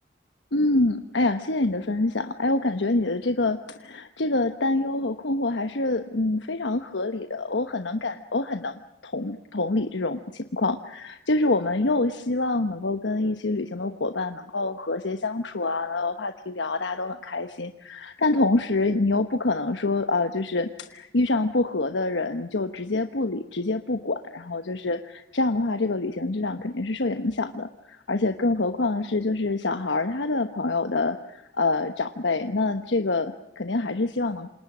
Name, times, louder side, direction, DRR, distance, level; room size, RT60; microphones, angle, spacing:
voice 1, 0.5-34.5, left 2 dB, 90° left, 8 dB, 1.1 m, -26 dB
28.0 x 27.0 x 6.2 m, 0.89 s
head